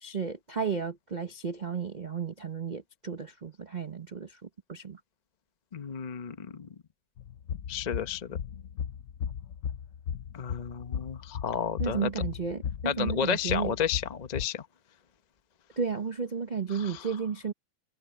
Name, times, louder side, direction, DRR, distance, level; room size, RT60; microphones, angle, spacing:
voice 1, 0.0-4.4 4.7-5.0 11.8-13.7 15.8-17.5, right 6 dB, 55° right, 0.5 m, -33 dB
voice 2, 5.7-6.7 7.7-8.4 10.3-12.1 12.8-14.7 16.7-17.1, left 7 dB, 45° left, 0.5 m, -32 dB
sound 1, 7.2-14.5, left 8 dB, 85° left, 0.6 m, -36 dB
omnidirectional pair, 2.3 m